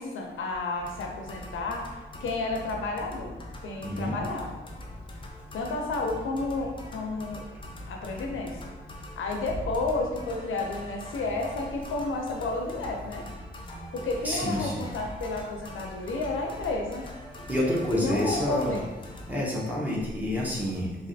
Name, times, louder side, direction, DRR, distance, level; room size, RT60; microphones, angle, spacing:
voice 1, 0.0-3.3 3.6-4.6 5.5-7.4 7.9-8.7 9.2-13.3 13.9-17.1 17.9-19.0, left 2 dB, 85° left, 1 dB, 0.5 m, -31 dB
sound 1, 0.8-19.4, left 1 dB, 25° left, 0.5 m, -42 dB
voice 2, 3.8-4.2 14.2-14.8 17.5-18.8 19.3-21.1, left 1 dB, 10° right, -5 dB, 0.8 m, -28 dB
3.2 x 2.4 x 2.6 m, 1.1 s
cardioid pair, 80°, 20 cm